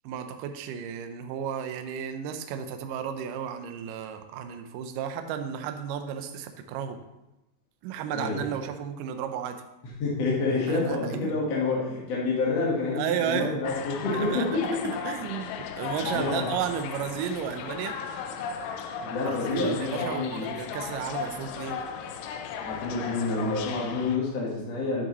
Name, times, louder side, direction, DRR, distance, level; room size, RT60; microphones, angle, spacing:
voice 1, 0.0-7.0 7.8-9.6 10.7-11.3 12.9-13.6 14.1-18.0 19.2-21.8, right 8 dB, 85° right, 7 dB, 1.9 m, -33 dB
voice 2, 10.0-14.9 16.0-16.5 19.0-20.5 22.6-25.0, left 3 dB, 55° left, -4 dB, 2.0 m, -28 dB
sound 1, 13.6-24.2, left 6 dB, 80° left, 2.1 m, -36 dB
10.0 x 6.6 x 3.0 m, 0.95 s
omnidirectional pair, 4.7 m